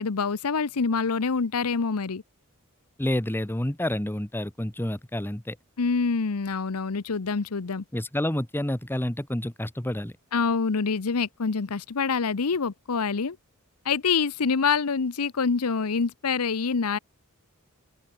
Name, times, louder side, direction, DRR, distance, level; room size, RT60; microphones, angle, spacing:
voice 1, 0.0-2.2 5.8-7.8 10.3-13.4 13.8-17.0, left 5 dB, 80° left, 0.8 m, -26 dB
voice 2, 3.0-5.6 7.9-10.1, left 1 dB, 10° left, 1.1 m, -29 dB
open air
head